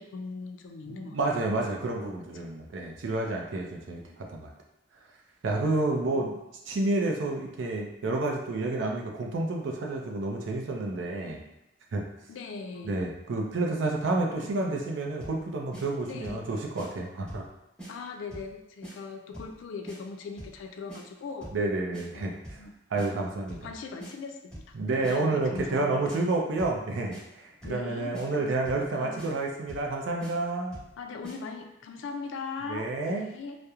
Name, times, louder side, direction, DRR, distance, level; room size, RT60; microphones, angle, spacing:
voice 1, 0.0-1.2 2.3-2.5 4.1-4.2 6.1-6.3 12.3-12.9 14.4-14.5 16.0-16.4 17.9-21.5 22.1-23.1 23.6-26.0 27.6-29.3 31.0-33.6, left 4 dB, 85° left, 5 dB, 0.3 m, -40 dB
voice 2, 0.9-4.0 4.3-4.5 5.4-6.4 6.7-11.4 11.9-12.0 12.8-17.4 21.5-22.6 22.9-23.7 24.7-30.8 32.7-33.3, right 2 dB, 85° right, 1 dB, 0.4 m, -30 dB
sound 1, 15.2-15.4 15.7-15.8 16.2-16.5 16.8-16.9 17.3-17.5 17.8-17.9 18.3-18.5 18.8-18.9 19.3-19.6 19.9-20.0 20.4-20.6 20.9-21.0 21.4-21.6 21.9-22.0 22.4-22.7 23.0-23.1 23.5-23.7 24.0-24.1 24.5-24.7 25.0-25.2 25.5-25.8 26.1-26.2 26.6-26.8 27.1-27.2 27.6-27.8 28.1-28.3 28.6-28.9 29.2-29.3 29.7-29.9 30.2-30.3 30.7-30.9 31.2-31.4, right 1 dB, 5° left, 0.9 m, -43 dB
2.9 x 2.0 x 2.3 m, 0.88 s
head